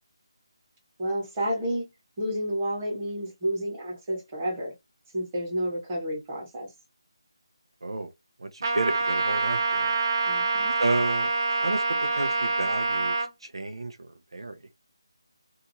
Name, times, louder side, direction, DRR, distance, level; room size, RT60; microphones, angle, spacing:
voice 1, 1.0-1.8 2.2-4.7 5.1-6.7 10.2-10.7, equal, 20° right, 1.4 m, -30 dB
voice 2, 7.8-8.1 8.4-10.0 10.8-11.8 12.2-14.6, right 2 dB, 90° right, 0.7 m, -31 dB
Trumpet, 8.6-13.3, right 3 dB, 45° right, 0.5 m, -26 dB
2.8 x 2.5 x 2.7 m
figure-of-eight pair, 170°, 3 cm